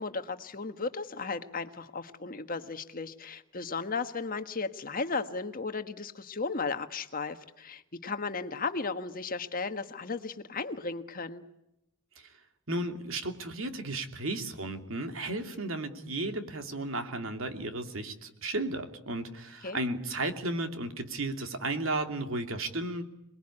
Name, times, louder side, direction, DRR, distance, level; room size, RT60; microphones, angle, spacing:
voice 1, 0.0-11.4 19.6-19.8, left 4 dB, 40° left, 9 dB, 1.4 m, -35 dB
voice 2, 12.7-23.0, right 2 dB, 70° right, 6 dB, 2.8 m, -34 dB
27.5 x 21.0 x 9.9 m, 0.87 s
head